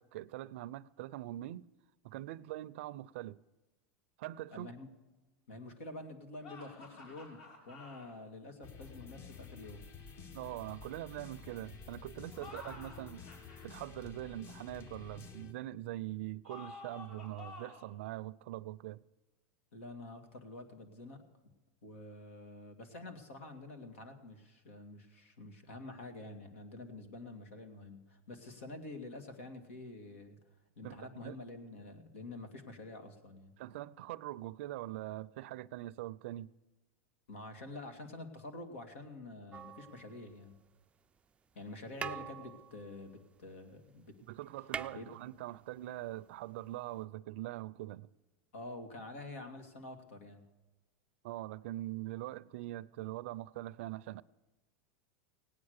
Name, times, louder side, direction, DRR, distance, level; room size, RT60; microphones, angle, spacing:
voice 1, 0.0-1.7 2.0-3.4 4.2-4.7 10.3-13.3 13.6-19.0 30.8-31.4 33.6-36.5 44.3-48.1 51.2-54.2, right 15 dB, 70° right, 0.5 m, -43 dB
voice 2, 4.5-4.9 5.5-7.4 7.7-9.8 19.7-21.5 21.8-30.4 30.8-33.5 37.3-40.6 41.5-44.2 44.9-45.1 48.5-50.4, left 2 dB, 85° left, 2.3 m, -48 dB
sound 1, 6.4-8.1 12.2-13.7 16.4-17.9, left 3 dB, 60° left, 4.3 m, -51 dB
sound 2, 8.6-15.5, left 5 dB, 40° left, 1.2 m, -51 dB
sound 3, 39.5-40.7 41.6-41.7 42.0-43.8 44.1-44.2 44.4-45.8 47.0-47.1, right 7 dB, 15° right, 0.4 m, -44 dB
17.5 x 9.7 x 6.6 m
supercardioid pair, 125°, 7 cm